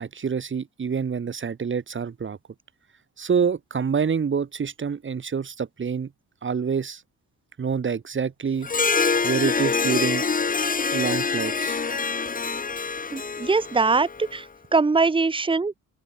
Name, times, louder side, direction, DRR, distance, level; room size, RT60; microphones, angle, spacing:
voice 1, 0.0-2.4 3.2-6.1 6.4-7.0 7.6-8.7 9.2-10.2 10.9-11.8, right 6 dB, 40° right, 3.6 m, -26 dB
Harp, 8.6-14.4, left 5 dB, 25° left, 1.7 m, -25 dB
voice 2, 13.1-14.4 14.7-15.7, right 4 dB, 15° right, 1.2 m, -22 dB
open air
cardioid pair, 90°, 30 cm